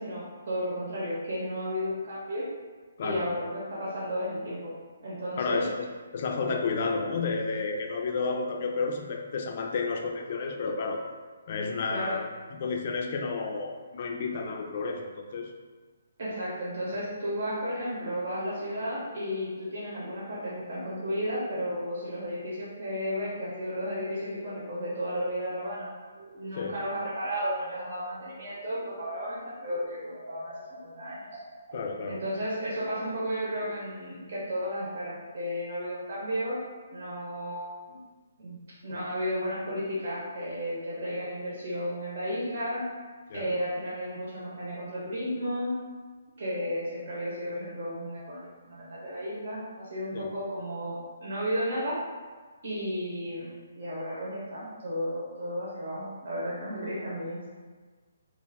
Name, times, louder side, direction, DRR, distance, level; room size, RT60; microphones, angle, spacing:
voice 1, 0.0-2.5 3.0-4.7 5.0-5.6 11.9-12.2 16.2-25.9 26.3-31.3 32.1-36.6 36.9-38.0 38.4-42.8 43.3-45.7 46.4-52.0 52.6-57.5, equal, 60° right, -7 dB, 0.9 m, -33 dB
voice 2, 5.4-5.8 6.1-11.0 11.5-12.3 12.6-15.5 26.6-26.7 31.7-32.2 43.3-43.5 50.1-50.3, left 4 dB, 50° left, 2 dB, 0.4 m, -31 dB
sound 1, 26.1-29.4 29.7-32.7, right 1 dB, 40° right, 0.5 m, -46 dB
2.4 x 2.3 x 3.3 m, 1.4 s
hypercardioid pair, 145°, 0 cm